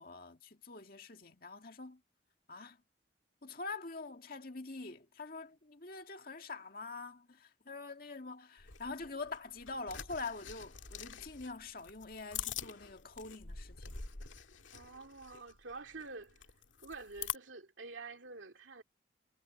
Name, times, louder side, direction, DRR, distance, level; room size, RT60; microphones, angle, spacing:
voice 1, 0.0-2.0 2.5-2.8 3.4-14.0, left 3 dB, 50° left, 2.0 m, -45 dB
sound 1, 8.6-17.4, left 8 dB, 85° left, 2.1 m, -45 dB
voice 2, 14.7-16.4 16.8-18.8, right 3 dB, 85° right, 2.3 m, -48 dB
head